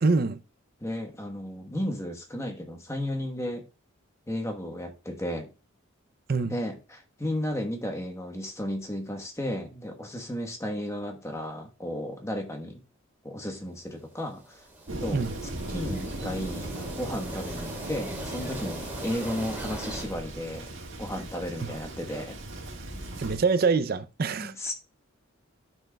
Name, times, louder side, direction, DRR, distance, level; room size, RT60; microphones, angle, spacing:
voice 1, 0.0-0.4 6.3-6.6 15.1-15.3 23.2-24.5, right 4 dB, 45° right, 0.5 m, -25 dB
voice 2, 0.8-3.6 4.3-5.5 6.5-12.8 13.2-14.6 15.0-20.7 21.0-22.4 24.4-24.7, left 1 dB, 15° left, 1.1 m, -34 dB
sound 1, 14.2-20.1, right 1 dB, 10° right, 2.2 m, -40 dB
Thunder, 14.9-23.4, right 1 dB, 60° right, 1.8 m, -38 dB
14.0 x 6.2 x 2.2 m
head